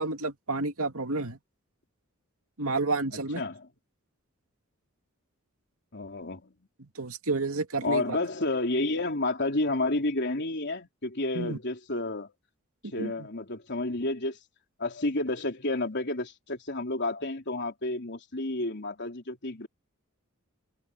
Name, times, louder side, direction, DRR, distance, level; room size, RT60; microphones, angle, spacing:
voice 1, 0.0-1.4 2.6-3.4 6.8-8.2 11.3-11.6 12.8-13.3, right 3 dB, 75° right, 2.5 m, -30 dB
voice 2, 3.3-3.7 5.9-6.5 7.8-12.3 12.9-14.4 14.8-19.7, left 2 dB, 55° left, 3.8 m, -30 dB
head